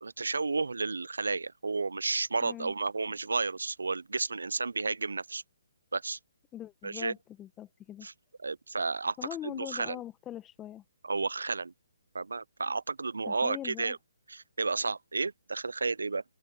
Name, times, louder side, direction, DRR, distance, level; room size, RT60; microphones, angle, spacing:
voice 1, 0.0-5.4 5.9-6.2 6.8-7.1 8.0-8.1 8.4-9.2 9.4-10.0 11.0-11.7 12.1-14.0 14.3-16.2, right 4 dB, 80° right, 0.4 m, -32 dB
voice 2, 2.4-2.7 6.5-8.1 9.2-10.8 13.3-14.0, left 12 dB, 15° left, 1.5 m, -42 dB
open air
figure-of-eight pair, 140°, 0 cm